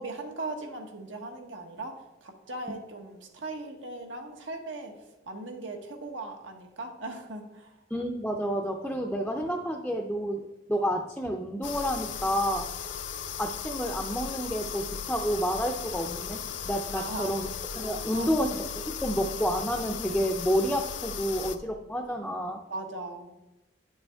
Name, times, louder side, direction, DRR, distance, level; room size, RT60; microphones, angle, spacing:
voice 1, 0.0-4.9 5.3-7.7 16.9-17.3 18.1-18.5 22.7-23.3, right 2 dB, 80° right, 3 dB, 1.3 m, -38 dB
voice 2, 7.9-12.7 13.4-17.5 17.8-22.6, equal, 5° left, 2 dB, 0.5 m, -30 dB
sound 1, 11.6-21.6, left 7 dB, 70° left, 0.5 m, -37 dB
9.5 x 6.8 x 3.5 m, 0.98 s
head